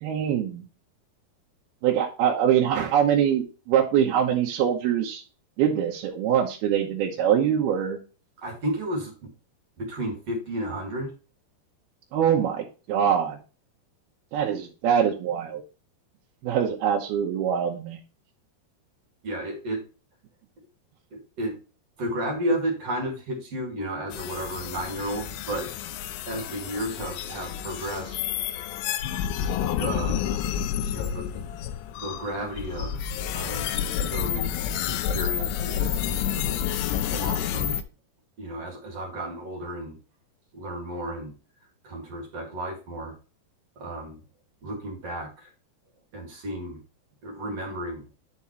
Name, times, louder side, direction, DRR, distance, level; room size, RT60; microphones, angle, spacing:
voice 1, 0.0-0.6 1.8-5.2 5.6-8.0 12.1-13.4 14.3-15.6 16.4-18.0, right 9 dB, 75° right, -2 dB, 2.8 m, -23 dB
voice 2, 8.4-9.3 9.8-11.1 19.2-19.8 21.1-21.6 22.0-25.7 26.3-28.2 29.8-30.2 30.9-31.5 32.0-33.0 33.3-33.7 34.1-36.6 37.1-37.8 38.4-40.0 40.5-41.3 41.8-43.1 43.8-44.2 44.6-45.5 46.1-46.8 47.2-48.1, right 1 dB, 45° right, 1 dB, 2.8 m, -33 dB
sound 1, 24.1-37.8, left 9 dB, 85° left, 2.8 m, -29 dB
9.7 x 5.7 x 3.0 m, 0.33 s
omnidirectional pair, 4.7 m